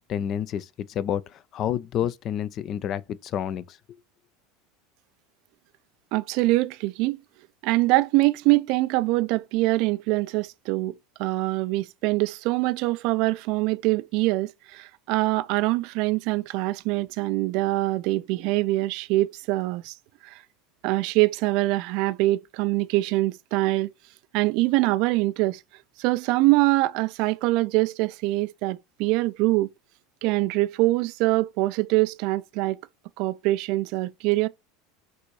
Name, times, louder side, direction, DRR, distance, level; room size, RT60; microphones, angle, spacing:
voice 1, 0.0-4.0, left 10 dB, 45° left, 0.4 m, -29 dB
voice 2, 6.1-7.2 7.6-10.9 11.2-19.9 20.2-20.4 20.8-23.9 24.3-25.6 26.0-29.7 30.2-32.8 33.2-34.5, right 19 dB, 55° right, 0.4 m, -24 dB
6.0 x 2.6 x 3.1 m
hypercardioid pair, 80°, 0 cm